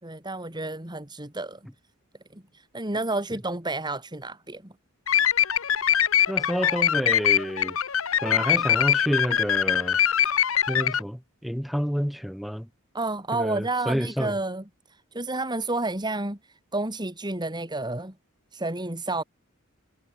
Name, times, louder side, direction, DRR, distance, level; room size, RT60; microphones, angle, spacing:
voice 1, 0.0-1.6 2.3-4.7 12.9-14.6 15.1-16.4 16.7-18.1 18.5-19.2, right 2 dB, 20° right, 3.1 m, -30 dB
sound 1, 5.1-11.0, left 10 dB, 75° left, 1.0 m, -23 dB
voice 2, 6.3-7.8 8.2-10.0 10.7-12.7 13.3-14.3, equal, ahead, 6.3 m, -29 dB
head